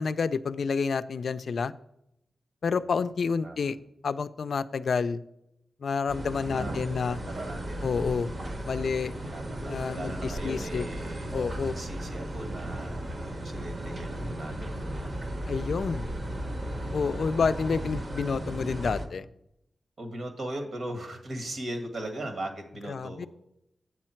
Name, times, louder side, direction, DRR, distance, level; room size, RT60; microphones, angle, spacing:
voice 1, 0.0-1.7 2.6-3.8 4.0-5.2 5.8-7.2 7.8-8.3 8.6-9.1 9.6-10.9 11.3-11.8 15.5-16.1 16.9-19.3 22.9-23.3, left 5 dB, 70° left, 13 dB, 0.3 m, -29 dB
sound 1, 6.1-19.1, right 1 dB, 40° right, 0.9 m, -35 dB
voice 2, 6.4-6.8 7.0-7.9 9.3-11.3 11.7-13.0 13.3-15.2 20.0-23.3, right 1 dB, 65° right, 5 dB, 1.6 m, -38 dB
8.4 x 7.4 x 4.4 m, 0.80 s
wide cardioid pair, 115°, 0 cm